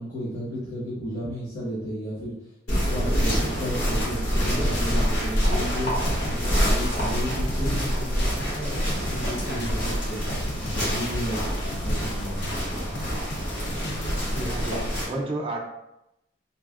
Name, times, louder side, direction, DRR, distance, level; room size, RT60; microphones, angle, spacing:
voice 1, 0.0-2.3 2.7-5.9 6.2-12.9, equal, 40° left, -10 dB, 0.9 m, -33 dB
sound 1, 2.7-15.0, equal, 75° left, 1.5 m, -26 dB
sound 2, 3.2-14.6, left 1 dB, 60° left, 0.5 m, -37 dB
voice 2, 14.3-15.6, right 1 dB, 25° right, -1 dB, 0.4 m, -31 dB
3.9 x 2.0 x 2.3 m, 0.87 s
head